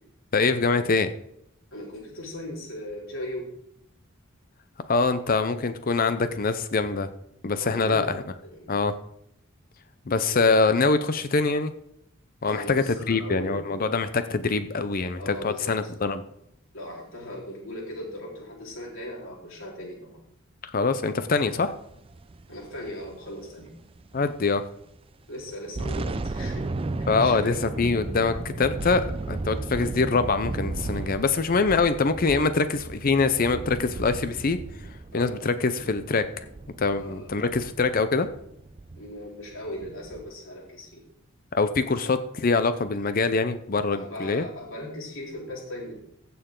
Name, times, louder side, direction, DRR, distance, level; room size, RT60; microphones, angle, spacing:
voice 1, 0.3-1.1 4.9-7.1 7.4-8.2 8.7-8.9 10.1-11.7 12.4-16.2 20.6-21.7 24.1-24.6 27.1-34.6 35.1-36.2 36.8-38.3 41.5-44.4, left 4 dB, 40° left, 11 dB, 0.6 m, -24 dB
voice 2, 1.7-3.5 7.6-8.1 8.4-8.8 10.3-10.5 12.5-13.8 15.2-15.9 16.7-20.2 22.5-23.8 25.3-27.6 35.1-35.4 37.0-37.5 39.0-41.0 43.9-46.0, left 1 dB, 65° left, -2 dB, 4.0 m, -38 dB
sound 1, 21.7-24.5 24.8-25.0 25.5-40.3, right 2 dB, 25° right, 0.4 m, -35 dB
15.5 x 6.9 x 3.8 m, 0.73 s
head